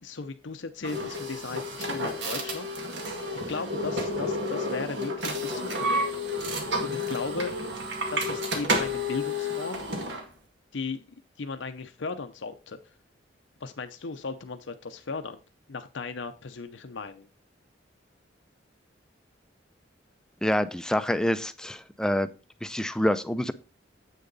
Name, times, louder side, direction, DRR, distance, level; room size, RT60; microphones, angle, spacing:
voice 1, 0.0-2.9 3.5-5.9 6.8-7.5 8.1-9.8 10.7-11.0 11.4-12.8 13.6-15.4 15.7-17.3, left 4 dB, 80° left, 8 dB, 0.7 m, -36 dB
sound 1, 0.8-10.3, left 1 dB, 70° right, 2.1 m, -30 dB
voice 2, 20.4-22.3 22.6-23.5, left 1 dB, 5° left, 12 dB, 0.5 m, -26 dB
8.3 x 6.7 x 4.0 m, 0.33 s
head